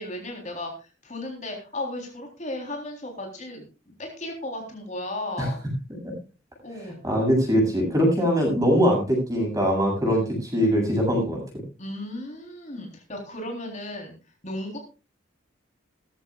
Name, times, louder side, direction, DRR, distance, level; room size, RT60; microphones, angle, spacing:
voice 1, 0.0-3.7 4.0-5.6 6.6-7.1 11.8-14.1 14.4-14.8, left 1 dB, 35° left, 2 dB, 3.8 m, -35 dB
voice 2, 6.8-11.6, equal, 15° right, 1 dB, 7.9 m, -22 dB
19.0 x 14.5 x 2.4 m, 0.32 s
head